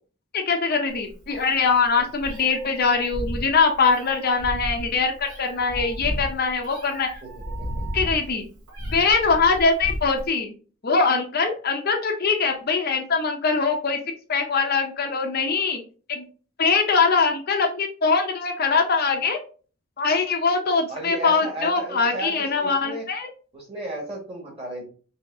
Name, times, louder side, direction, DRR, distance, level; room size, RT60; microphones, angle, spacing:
voice 1, 0.3-7.1 7.9-8.5 8.9-10.5 10.8-14.0 14.3-15.8 16.1-16.2 16.6-19.4 20.0-23.3, left 4 dB, 45° left, 3 dB, 0.6 m, -22 dB
Meow, 0.9-10.3, equal, 90° right, 2.1 m, -33 dB
voice 2, 20.9-23.0 23.5-24.8, right 1 dB, 25° right, -1 dB, 1.6 m, -34 dB
5.3 x 2.8 x 2.7 m, 0.38 s
head